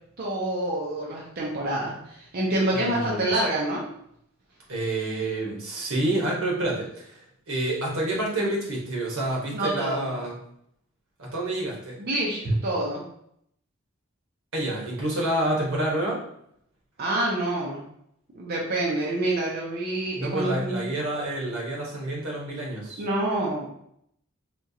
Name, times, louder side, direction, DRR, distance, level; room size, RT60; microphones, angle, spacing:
voice 1, 0.2-3.8 9.5-10.2 12.0-13.0 17.0-17.8 18.3-20.9 23.0-23.7, right 1 dB, 50° right, -4 dB, 0.7 m, -27 dB
voice 2, 2.7-3.3 4.7-7.2 7.5-10.4 11.2-12.0 12.4-12.5 14.5-16.2 20.1-23.0, right 1 dB, 85° right, -2 dB, 1.2 m, -28 dB
4.4 x 2.4 x 2.7 m, 0.72 s
head